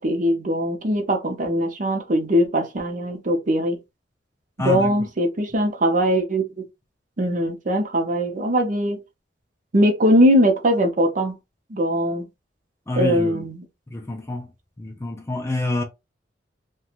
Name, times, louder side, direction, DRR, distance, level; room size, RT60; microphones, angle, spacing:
voice 1, 0.0-3.8 4.6-6.5 7.2-9.0 9.7-11.3 11.7-12.2 13.0-13.6, equal, 45° right, 0.6 m, -21 dB
voice 2, 4.6-5.0 12.9-13.5 13.9-14.5 14.8-15.8, left 2 dB, 15° left, 0.5 m, -27 dB
2.5 x 2.2 x 2.9 m
head